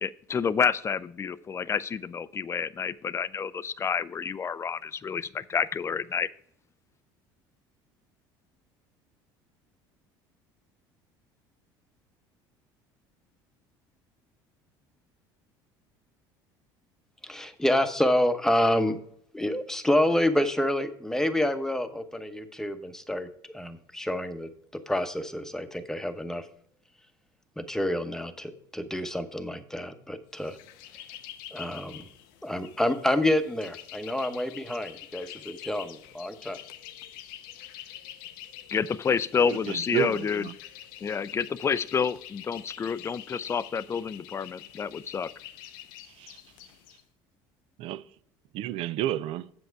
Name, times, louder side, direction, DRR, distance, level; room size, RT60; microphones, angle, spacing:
voice 1, 0.0-6.3 38.7-40.4 41.0-45.3, left 6 dB, 25° left, 0.4 m, -29 dB
voice 2, 17.2-19.0 19.3-23.3 23.5-24.5 24.9-26.5 27.6-30.6 30.9-31.0 31.5-32.1 32.4-36.6, left 1 dB, 5° left, 1.0 m, -28 dB
sound 1, 30.4-47.0, left 12 dB, 85° left, 0.6 m, -46 dB
voice 3, 39.5-40.6 46.1-46.4 47.8-48.0 48.5-49.5, right 13 dB, 65° right, 0.5 m, -31 dB
7.9 x 6.3 x 4.6 m
supercardioid pair, 85°, 11 cm